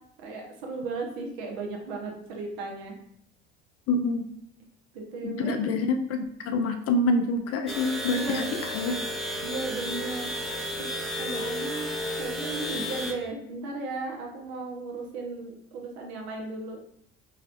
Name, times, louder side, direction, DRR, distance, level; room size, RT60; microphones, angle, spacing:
voice 1, 0.2-2.9 4.9-5.7 8.2-8.5 9.4-10.3 10.8-10.9 11.2-11.9 12.2-16.8, right 3 dB, 65° right, 1 dB, 1.0 m, -35 dB
voice 2, 3.9-4.3 5.2-8.9, left 2 dB, 45° left, 6 dB, 0.5 m, -27 dB
sound 1, 7.7-13.1, equal, ahead, 0.7 m, -32 dB
4.3 x 3.1 x 2.5 m, 0.71 s
figure-of-eight pair, 55°, 34 cm